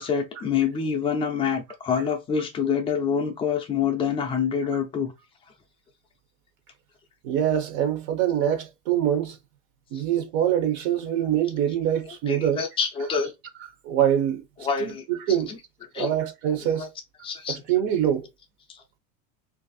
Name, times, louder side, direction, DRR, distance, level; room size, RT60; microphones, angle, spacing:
voice 1, 0.0-5.1 9.9-10.0 12.3-13.3 14.6-15.6 15.9-16.2 16.6-16.9 17.2-17.6, left 6 dB, 15° left, 0.4 m, -27 dB
voice 2, 7.2-9.4 9.9-12.6 13.8-14.4 14.8-15.6 16.0-16.9 17.5-18.3, right 10 dB, 45° right, 0.6 m, -24 dB
2.9 x 2.6 x 4.0 m
supercardioid pair, 165°, 40 cm